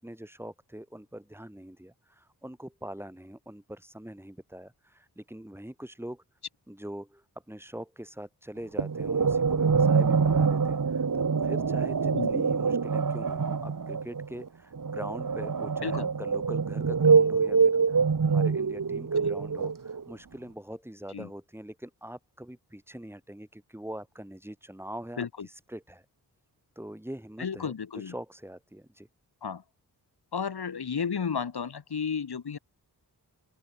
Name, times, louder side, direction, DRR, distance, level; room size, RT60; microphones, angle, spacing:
voice 1, 0.0-6.2 6.7-26.1 26.8-29.1, right 1 dB, 5° right, 5.4 m, -43 dB
sound 1, 8.8-20.1, right 5 dB, 55° right, 3.8 m, -25 dB
voice 2, 27.4-28.1 29.4-29.6 30.3-32.6, left 6 dB, 75° left, 7.8 m, -33 dB
open air
cardioid pair, 75°, 39 cm